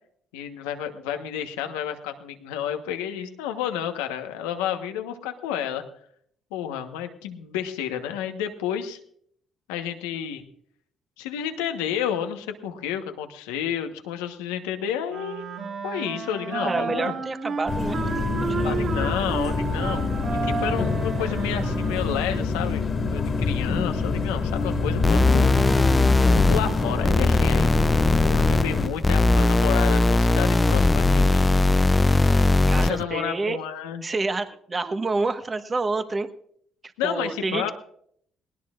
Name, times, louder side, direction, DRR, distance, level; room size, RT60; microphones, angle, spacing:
voice 1, 0.3-5.8 6.5-9.0 9.7-10.4 11.2-15.4 15.8-17.1 18.6-22.8 23.1-25.5 26.5-27.7 28.2-31.5 32.3-34.0 37.0-37.7, left 9 dB, 90° left, 6 dB, 1.2 m, -31 dB
Wind instrument woodwind instrument, 15.1-22.6, right 5 dB, 60° right, 6.4 m, -32 dB
voice 2, 16.6-18.0 18.5-19.1 32.7-33.6 34.0-36.3 36.8-37.7, right 3 dB, 35° right, 8 dB, 1.4 m, -28 dB
sound 1, 17.7-28.9, left 4 dB, 45° left, 2.1 m, -26 dB
sound 2, 25.0-33.0, left 2 dB, 25° left, 0.5 m, -19 dB
19.5 x 18.0 x 2.5 m, 0.65 s
supercardioid pair, 55°, 0 cm